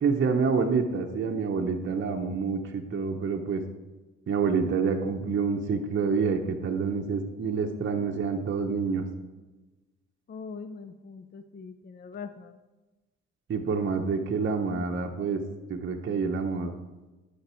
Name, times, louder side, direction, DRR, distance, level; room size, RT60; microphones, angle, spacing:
voice 1, 0.0-3.6 4.3-9.0 13.5-15.4 15.7-16.7, right 5 dB, 40° right, 2 dB, 0.8 m, -27 dB
voice 2, 10.3-12.6, left 5 dB, 35° left, 10 dB, 0.5 m, -42 dB
11.5 x 5.2 x 4.5 m, 1.2 s
cardioid pair, 90°, 30 cm